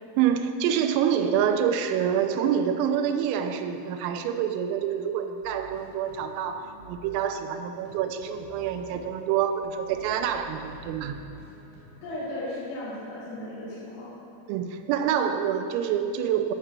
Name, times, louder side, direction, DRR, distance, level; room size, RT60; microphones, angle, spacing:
voice 1, 0.2-11.2 14.5-16.5, right 8 dB, 85° right, 8 dB, 3.3 m, -27 dB
sound 1, 5.4-12.1, right 1 dB, 55° right, 3.0 m, -50 dB
voice 2, 12.0-14.1, left 1 dB, 70° left, -11 dB, 4.6 m, -35 dB
9.9 x 8.9 x 6.1 m, 2.6 s
omnidirectional pair, 5.9 m